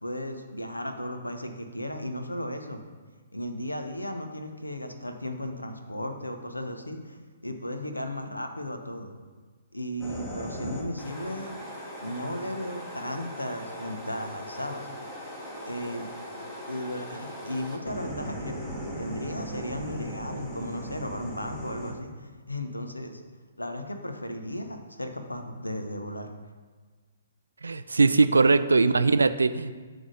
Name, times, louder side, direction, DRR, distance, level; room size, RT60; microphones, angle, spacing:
voice 1, 0.0-2.8 3.3-9.1 9.7-11.5 12.0-14.9 15.7-16.1 16.7-18.6 19.0-23.2 23.6-26.3 28.1-28.3 28.8-28.9, left 1 dB, 80° left, 6 dB, 0.8 m, -35 dB
sound 1, 10.0-21.9, equal, 20° left, 1.2 m, -38 dB
voice 2, 27.6-29.8, right 4 dB, 70° right, 12 dB, 0.3 m, -21 dB
7.3 x 3.5 x 6.4 m, 1.4 s
figure-of-eight pair, 125°, 0 cm